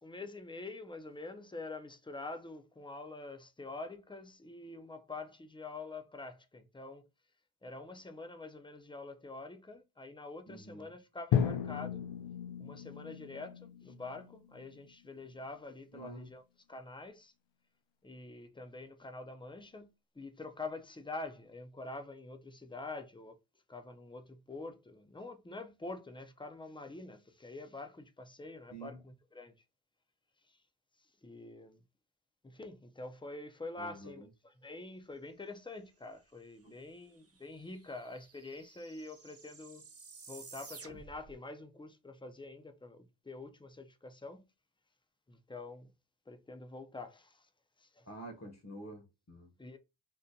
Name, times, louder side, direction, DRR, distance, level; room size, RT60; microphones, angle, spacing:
voice 1, 0.0-7.1 7.6-12.0 12.6-16.4 16.7-17.3 18.0-19.9 20.2-23.4 23.7-29.5 31.2-31.8 32.4-39.9 40.3-44.5 45.3-45.9 46.3-47.5 47.8-48.0 49.6-49.8, left 3 dB, 10° left, 0.4 m, -46 dB
voice 2, 10.5-10.9 15.9-16.3 28.7-29.0 33.8-34.3 36.6-36.7 48.0-49.5, right 1 dB, 35° left, 0.8 m, -48 dB
Drum, 11.3-15.3, left 8 dB, 65° left, 0.5 m, -35 dB
sound 1, 36.8-36.9 37.1-41.3, right 4 dB, 30° right, 0.7 m, -53 dB
3.7 x 2.1 x 2.6 m
cardioid pair, 85°, 48 cm